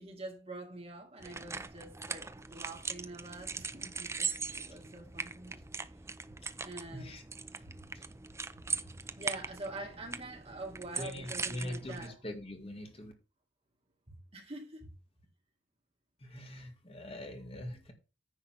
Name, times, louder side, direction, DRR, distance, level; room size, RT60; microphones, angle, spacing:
voice 1, 0.0-5.6 6.6-7.1 7.6-7.9 8.5-12.1 14.1-14.9, right 2 dB, 30° right, 2.2 m, -46 dB
sound 1, 1.2-12.1, right 4 dB, 15° right, 0.6 m, -40 dB
voice 2, 6.4-7.2 7.6-8.0 11.0-13.1 16.2-17.9, left 1 dB, 30° left, 2.0 m, -44 dB
10.0 x 3.9 x 7.4 m
head